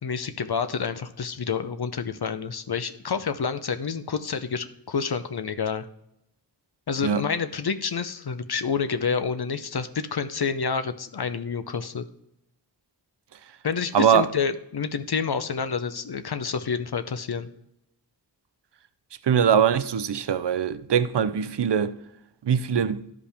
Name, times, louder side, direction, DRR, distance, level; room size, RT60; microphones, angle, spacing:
voice 1, 0.0-5.9 6.9-12.0 13.6-17.5, left 6 dB, 65° left, 0.6 m, -28 dB
voice 2, 13.9-14.3 19.2-21.9 22.4-23.0, right 8 dB, 80° right, 0.6 m, -22 dB
11.5 x 5.1 x 3.4 m
wide cardioid pair, 55°, 41 cm